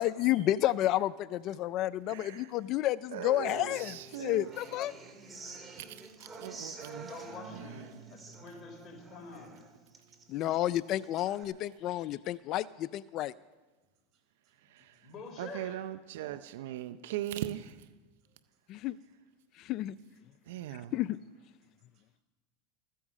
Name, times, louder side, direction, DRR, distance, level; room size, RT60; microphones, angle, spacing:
voice 1, 0.0-4.9 10.3-13.3 18.7-19.0 19.6-20.0 20.9-21.2, left 14 dB, 50° left, 0.3 m, -31 dB
voice 2, 2.1-2.6 3.1-4.5 5.8-7.1 7.5-7.8 14.7-15.0 15.4-17.6 20.5-20.9, right 13 dB, 75° right, 0.5 m, -40 dB
Human voice / Acoustic guitar, 3.4-11.4, right 3 dB, 20° right, 2.5 m, -49 dB
voice 3, 7.1-9.6 15.0-15.8, left 3 dB, 35° left, 3.4 m, -47 dB
voice 4, 14.1-14.5 14.9-15.0 18.2-18.4 18.8-18.9 19.7-19.8 20.6-20.9 21.9-22.2, right 1 dB, 45° right, 5.5 m, -67 dB
14.5 x 10.0 x 7.4 m
supercardioid pair, 115°, 0 cm